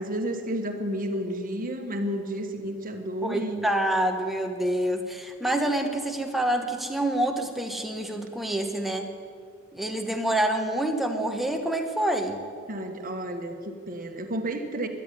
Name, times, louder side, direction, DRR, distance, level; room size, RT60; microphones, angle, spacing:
voice 1, 0.0-3.7 12.7-14.9, right 1 dB, 40° right, 5 dB, 1.5 m, -31 dB
voice 2, 3.2-9.1 9.7-12.4, right 1 dB, ahead, 4 dB, 1.2 m, -27 dB
13.0 x 10.0 x 10.0 m, 2.3 s
head